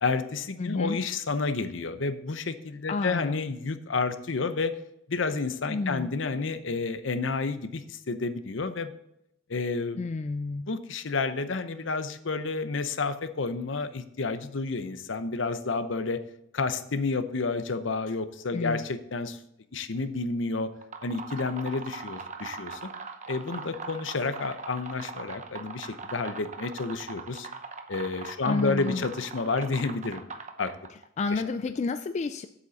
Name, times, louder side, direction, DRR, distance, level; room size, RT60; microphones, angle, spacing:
voice 1, 0.0-4.7 5.1-8.9 9.5-10.0 10.7-16.2 16.5-19.4 19.7-20.7 21.0-22.9 23.3-27.5 27.9-30.2 30.6-30.7, left 4 dB, 65° left, 11 dB, 0.7 m, -30 dB
voice 2, 0.6-1.0 2.9-3.4 5.7-6.1 10.0-10.7 18.5-18.9 28.4-29.0 31.2-32.5, left 3 dB, 35° left, 10 dB, 0.3 m, -30 dB
sound 1, 20.7-31.0, right 4 dB, 35° right, 0.8 m, -41 dB
8.3 x 8.1 x 4.1 m, 0.80 s
head